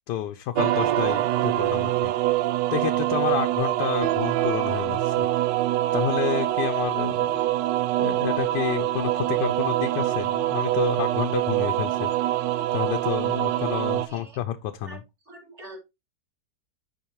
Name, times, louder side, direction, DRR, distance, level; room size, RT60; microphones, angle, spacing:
voice 1, 0.1-2.1 2.7-5.3 5.9-7.4 8.0-12.1 12.7-15.0, left 11 dB, 80° left, 1.2 m, -30 dB
sound 1, 0.6-14.1, right 14 dB, 85° right, 1.2 m, -24 dB
voice 2, 14.0-14.4 14.8-15.0 15.2-15.8, right 1 dB, 40° right, 2.4 m, -44 dB
11.0 x 4.2 x 3.0 m
omnidirectional pair, 1.8 m